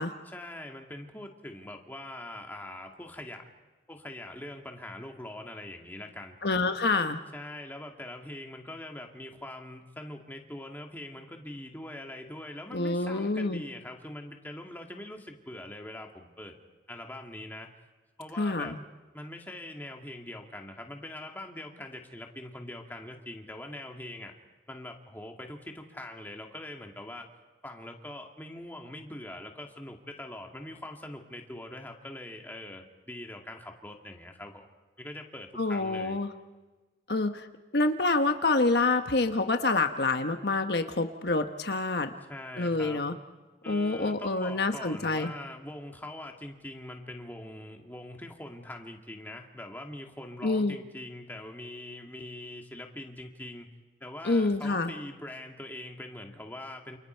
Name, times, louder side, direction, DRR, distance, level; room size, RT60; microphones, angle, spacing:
voice 1, 0.3-3.5 3.9-6.4 7.3-16.6 16.9-17.7 18.2-18.8 19.1-24.3 24.7-27.3 27.6-34.7 35.0-36.2 42.2-43.0 43.6-53.7 54.0-57.0, left 1 dB, 10° left, 2 dB, 2.3 m, -43 dB
voice 2, 6.4-7.2 12.7-13.6 18.4-18.8 35.6-36.3 37.1-37.5 37.7-42.1 42.6-43.1 43.7-45.3 50.4-50.8 54.2-54.9, left 3 dB, 70° left, 7 dB, 1.2 m, -27 dB
29.0 x 28.5 x 4.6 m, 1.2 s
head